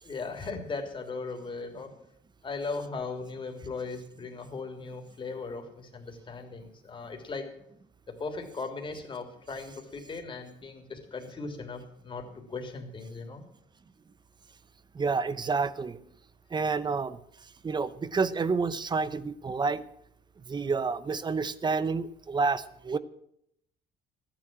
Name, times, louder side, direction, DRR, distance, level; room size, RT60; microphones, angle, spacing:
voice 1, 0.0-1.9 2.4-7.5 8.1-13.4, left 4 dB, 30° left, 4 dB, 3.1 m, -38 dB
voice 2, 14.9-16.0 16.5-17.2 17.6-19.8 20.5-23.0, right 4 dB, 25° right, 16 dB, 0.9 m, -29 dB
13.5 x 10.0 x 7.5 m, 0.73 s
cardioid pair, 110°, 17 cm